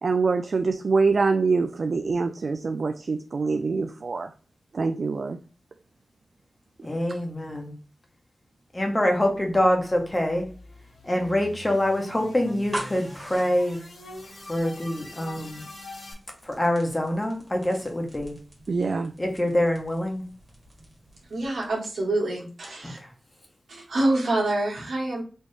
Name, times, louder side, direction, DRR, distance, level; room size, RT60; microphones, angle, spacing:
voice 1, 0.0-4.3 4.7-5.4 18.7-19.1, right 4 dB, 55° right, 6 dB, 0.3 m, -24 dB
voice 2, 6.8-7.7 8.7-10.5 11.0-13.8 14.5-15.6 16.4-18.3 19.2-20.2 22.8-23.1, left 1 dB, 20° left, 2 dB, 1.0 m, -25 dB
sound 1, 9.7-16.1, left 1 dB, 75° left, 2.2 m, -44 dB
sound 2, 12.7-22.2, right 1 dB, 15° right, 1.7 m, -44 dB
voice 3, 21.3-23.0 23.7-25.2, right 2 dB, 90° right, -3 dB, 1.7 m, -26 dB
4.3 x 3.0 x 3.3 m, 0.38 s
wide cardioid pair, 125°, 0 cm